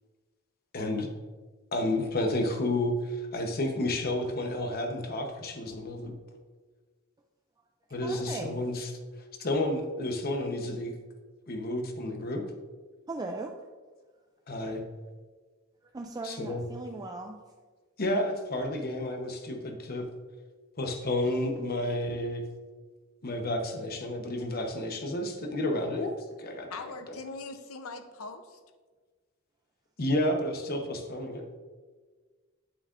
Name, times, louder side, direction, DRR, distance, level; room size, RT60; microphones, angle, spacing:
voice 1, 0.7-1.1 1.7-6.1 7.9-8.9 9.4-10.9 11.5-12.4 14.5-14.8 16.2-16.6 18.0-20.1 20.8-22.4 23.2-26.7 30.0-31.5, left 1 dB, 45° left, 4 dB, 0.9 m, -31 dB
voice 2, 8.0-8.7 13.1-13.5 15.9-17.4, right 2 dB, 20° right, 2 dB, 0.3 m, -38 dB
voice 3, 26.7-28.6, left 3 dB, 85° left, 8 dB, 0.7 m, -41 dB
8.8 x 7.5 x 2.5 m, 1.4 s
head